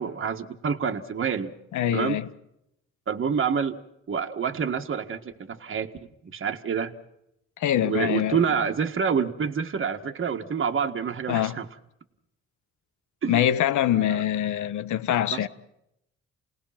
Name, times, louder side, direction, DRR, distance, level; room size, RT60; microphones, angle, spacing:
voice 1, 0.0-1.5 1.9-2.2 3.1-3.8 4.1-5.9 6.2-6.9 7.8-11.6 13.2-13.4 13.9-14.2 15.3-15.5, right 6 dB, 40° right, 1.7 m, -27 dB
voice 2, 1.7-2.3 7.6-8.4 11.3-11.6 13.3-15.5, left 11 dB, 75° left, 1.3 m, -24 dB
29.5 x 19.0 x 5.9 m
cardioid pair, 90°, 30 cm